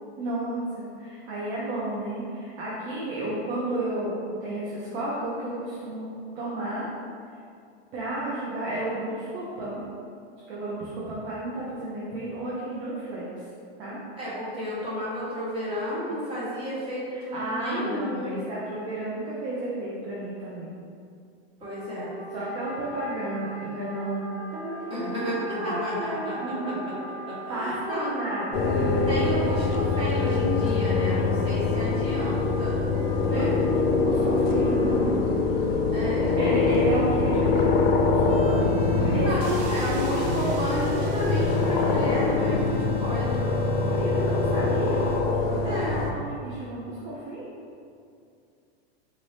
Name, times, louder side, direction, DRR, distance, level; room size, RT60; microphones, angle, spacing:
voice 1, 0.2-6.9 7.9-9.8 10.5-13.3 13.8-14.0 17.1-20.8 22.1-25.3 25.6-26.9 27.5-29.0 33.3-33.6 33.9-35.3 36.4-38.7 38.9-39.3 39.8-40.2 43.9-45.1 45.5-47.5, right 2 dB, 55° right, -7 dB, 0.9 m, -32 dB
voice 2, 14.2-18.4 21.6-22.1 24.9-26.9 27.2-28.1 29.1-32.9 33.2-33.5 35.9-36.4 39.1-43.6 45.6-46.0, equal, 15° right, -9 dB, 1.4 m, -31 dB
Wind instrument woodwind instrument, 21.6-35.7, right 1 dB, 85° right, 1.0 m, -41 dB
sound 1, 28.5-46.1, left 3 dB, 70° left, 0.6 m, -24 dB
sound 2, 38.3-45.2, right 2 dB, 35° right, 0.4 m, -37 dB
4.2 x 2.8 x 3.4 m, 2.3 s
supercardioid pair, 140°, 32 cm